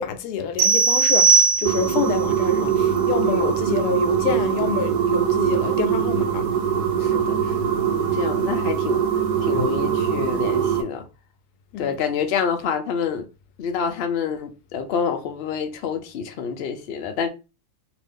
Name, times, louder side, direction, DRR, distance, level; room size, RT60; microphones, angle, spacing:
voice 1, 0.0-6.5 11.7-12.0, left 8 dB, 85° left, 1.1 m, -27 dB
sound 1, 0.6-2.1, right 5 dB, 55° right, 0.9 m, -18 dB
sound 2, 1.7-10.8, right 8 dB, 80° right, 1.2 m, -22 dB
voice 2, 3.1-3.7 7.0-11.1 11.8-13.3 13.6-17.3, left 6 dB, 60° left, 0.6 m, -28 dB
2.9 x 2.5 x 3.5 m
omnidirectional pair, 1.7 m